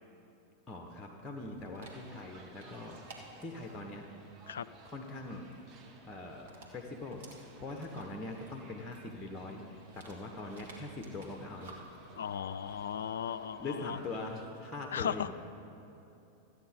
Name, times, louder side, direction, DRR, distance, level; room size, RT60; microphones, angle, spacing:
voice 1, 0.7-4.1 4.8-5.4 6.0-11.9 13.6-15.3, left 2 dB, 15° left, 3 dB, 0.9 m, -42 dB
Dog, 1.2-14.1, right 2 dB, 55° right, 1.8 m, -58 dB
sound 1, 1.8-14.4, right 3 dB, 35° right, 1.1 m, -59 dB
voice 2, 12.2-14.0 14.9-15.3, left 8 dB, 65° left, 13 dB, 0.3 m, -36 dB
13.5 x 9.0 x 5.1 m, 2.8 s
figure-of-eight pair, 90°, 0 cm